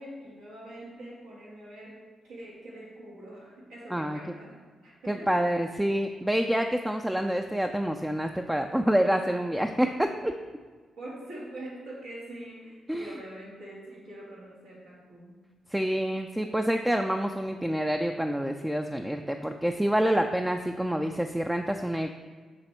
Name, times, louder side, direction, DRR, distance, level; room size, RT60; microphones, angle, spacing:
voice 1, 0.0-5.3 11.0-15.4, right 1 dB, 85° right, -6 dB, 1.7 m, -44 dB
voice 2, 5.1-10.3 12.9-13.1 15.7-22.1, equal, 10° right, 4 dB, 0.4 m, -27 dB
6.6 x 3.5 x 4.4 m, 1.5 s
hypercardioid pair, 45°, 0 cm